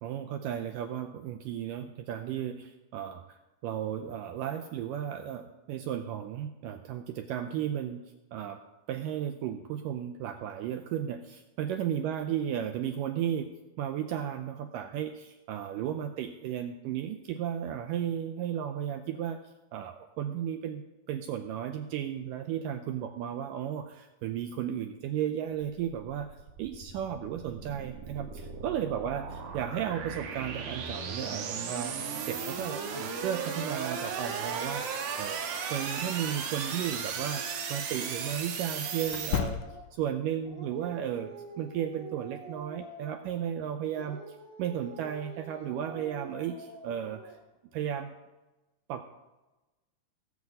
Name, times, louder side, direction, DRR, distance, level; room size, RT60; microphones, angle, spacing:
voice 1, 0.0-8.0 8.3-8.6 8.9-13.5 13.8-19.4 19.7-26.3 26.6-29.3 29.5-34.9 35.2-35.4 35.7-37.4 37.7-39.6 39.9-41.3 41.6-44.2 44.6-47.4 47.7-48.1 48.9-49.0, right 10 dB, 85° right, 7 dB, 1.9 m, -34 dB
sound 1, 26.3-39.4, right 6 dB, 60° right, 2.6 m, -36 dB
sound 2, 36.9-37.0 39.1-40.1, left 9 dB, 80° left, 2.2 m, -33 dB
Dog, 37.2-40.0 40.4-43.5 43.9-47.5, right 3 dB, 30° right, 1.8 m, -47 dB
17.5 x 5.9 x 7.8 m, 1.1 s
omnidirectional pair, 4.5 m